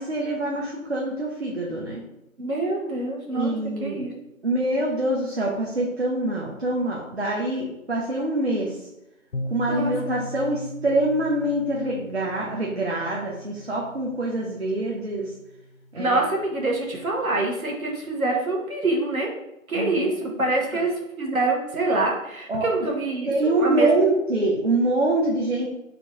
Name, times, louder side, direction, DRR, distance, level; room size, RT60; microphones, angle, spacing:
voice 1, 0.0-2.0 3.3-4.1 4.4-8.9 9.5-15.3 15.9-16.2 19.7-20.1 20.7-20.8 22.5-22.7 23.3-25.7, right 2 dB, 50° right, -2 dB, 0.7 m, -25 dB
voice 2, 2.4-3.5 3.8-4.1 9.7-10.3 15.9-19.3 19.7-23.9, right 2 dB, 80° right, -1 dB, 1.3 m, -26 dB
sound 1, 9.3-17.0, left 1 dB, 75° left, 0.7 m, -39 dB
3.8 x 2.6 x 4.6 m, 0.90 s
figure-of-eight pair, 160°, 42 cm